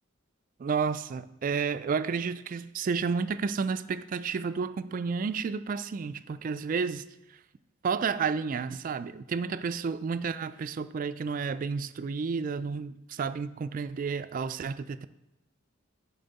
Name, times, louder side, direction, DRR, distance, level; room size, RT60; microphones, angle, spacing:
voice 1, 0.6-7.1 7.8-15.1, right 5 dB, 40° right, 0.3 m, -31 dB
10.0 x 4.3 x 4.1 m
head